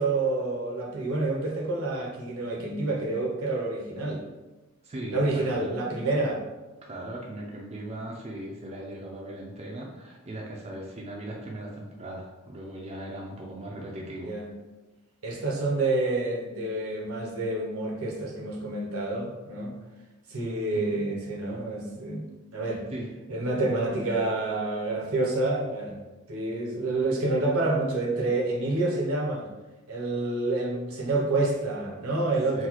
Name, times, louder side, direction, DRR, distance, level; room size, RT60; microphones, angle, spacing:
voice 1, 0.0-4.2 5.1-6.4 14.2-14.5 15.2-19.7 20.3-22.8 23.3-26.0 26.3-29.5 29.9-32.7, right 2 dB, 70° right, 0 dB, 0.7 m, -28 dB
voice 2, 4.8-5.7 6.8-14.3 20.7-21.0 22.9-23.1 32.5-32.7, right 1 dB, 30° right, -2 dB, 0.4 m, -38 dB
3.9 x 2.2 x 2.9 m, 1.1 s
head